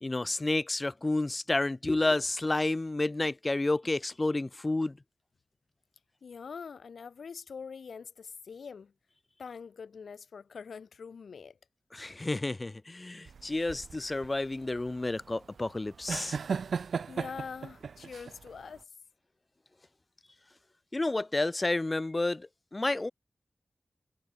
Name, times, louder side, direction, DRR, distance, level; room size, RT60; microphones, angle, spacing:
voice 1, 0.0-5.0 11.9-16.4 20.9-23.1, left 2 dB, 35° left, 0.9 m, -30 dB
voice 2, 6.2-8.9 9.4-11.6 17.1-18.9, left 6 dB, 85° left, 1.5 m, -44 dB
sound 1, 13.3-18.8, right 6 dB, 85° right, 0.7 m, -37 dB
cardioid pair, 45°, 0 cm